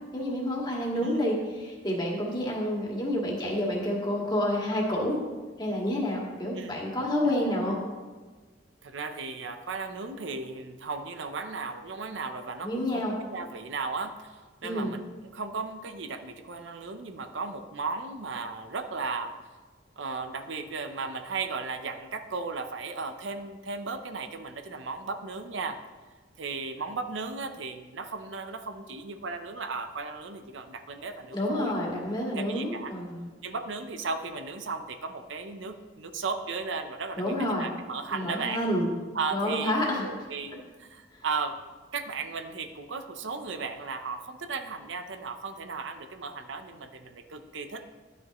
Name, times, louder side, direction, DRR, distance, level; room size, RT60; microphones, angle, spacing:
voice 1, 0.1-5.2 5.6-7.8 12.6-13.1 14.6-15.0 31.3-33.2 37.2-37.7 38.1-38.9 39.3-40.0, left 1 dB, 20° left, -3 dB, 1.9 m, -29 dB
voice 2, 6.5-6.8 7.2-7.3 8.8-19.4 20.0-25.8 26.4-31.7 32.3-32.9 33.4-38.6 39.1-39.7 40.0-41.6 41.9-47.8, right 4 dB, 75° right, 8 dB, 0.7 m, -36 dB
12.0 x 9.2 x 3.1 m, 1.3 s
head